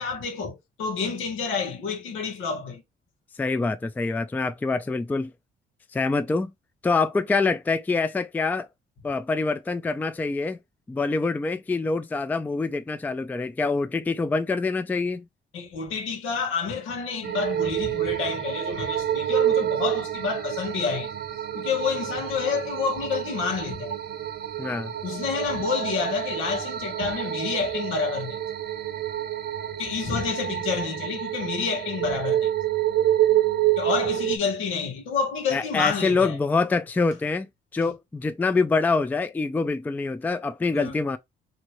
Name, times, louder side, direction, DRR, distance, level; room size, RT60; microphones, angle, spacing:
voice 1, 0.0-2.8 15.5-21.1 21.5-24.0 25.0-28.4 29.8-32.5 33.8-36.4 37.8-37.9 40.7-40.9, left 5 dB, 85° left, 1.2 m, -29 dB
voice 2, 3.4-5.3 5.9-6.5 6.8-8.7 9.0-10.6 10.9-15.2 24.6-24.9 35.5-37.5 37.7-41.2, left 3 dB, 10° left, 0.3 m, -25 dB
sound 1, 17.2-34.4, right 12 dB, 55° right, 0.7 m, -28 dB
2.9 x 2.7 x 3.0 m
cardioid pair, 90°, 20 cm